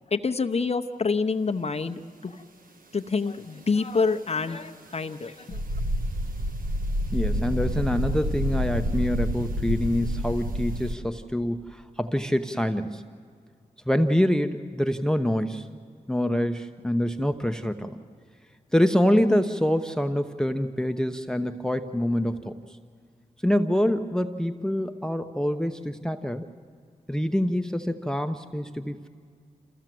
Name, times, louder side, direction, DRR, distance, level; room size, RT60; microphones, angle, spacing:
voice 1, 0.1-2.4 2.9-5.6, left 4 dB, 45° left, 7 dB, 0.8 m, -27 dB
sound 1, 5.5-10.9, equal, 65° right, 1.3 m, -28 dB
voice 2, 7.1-13.0 13.9-15.7 16.1-17.9 18.7-22.5 23.4-26.4 27.1-29.1, equal, 5° left, 8 dB, 0.9 m, -25 dB
27.5 x 15.0 x 7.7 m, 2.1 s
cardioid pair, 40°, 15 cm